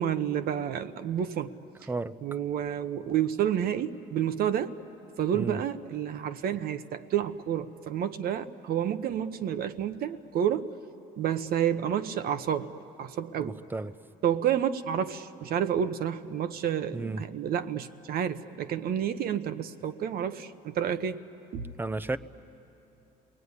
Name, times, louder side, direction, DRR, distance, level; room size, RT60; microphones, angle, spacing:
voice 1, 0.0-1.5 2.2-4.8 5.2-10.7 11.2-12.7 13.0-13.6 14.2-21.2 21.5-21.7, right 9 dB, 65° right, 10 dB, 1.0 m, -29 dB
voice 2, 1.9-2.2 5.3-5.6 13.4-13.9 16.9-17.2 21.8-22.2, right 3 dB, 10° right, 13 dB, 0.7 m, -33 dB
30.0 x 20.5 x 9.7 m, 2.9 s
cardioid pair, 110°, 17 cm